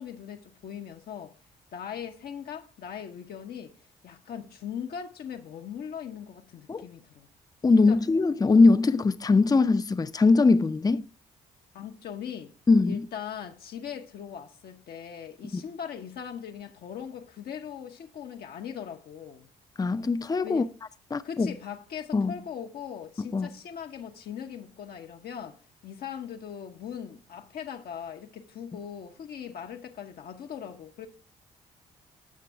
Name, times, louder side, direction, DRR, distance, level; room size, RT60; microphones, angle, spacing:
voice 1, 0.0-1.4 1.7-3.8 4.0-7.3 7.7-8.0 11.7-12.5 12.8-19.5 20.4-20.7 21.2-31.1, left 8 dB, 60° left, 0.8 m, -40 dB
voice 2, 7.6-11.0 12.7-13.0 15.5-15.6 19.8-20.6 21.1-21.6 22.1-22.3 23.3-23.5, left 3 dB, 20° left, 0.5 m, -21 dB
8.5 x 6.7 x 3.4 m
hypercardioid pair, 45°, 18 cm